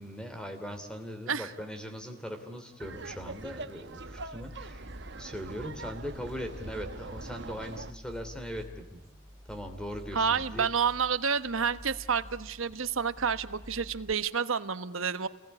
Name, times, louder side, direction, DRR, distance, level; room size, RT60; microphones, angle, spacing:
voice 1, 0.0-4.9 5.1-9.0 9.5-10.7, equal, 5° left, 7 dB, 3.0 m, -40 dB
Laughter, 2.8-7.9, right 3 dB, 55° right, 1.1 m, -43 dB
sound 1, 3.9-14.1, equal, 15° right, 1.6 m, -49 dB
voice 2, 10.1-15.3, right 6 dB, 70° right, 11 dB, 1.2 m, -29 dB
29.5 x 21.0 x 9.7 m, 1.0 s
head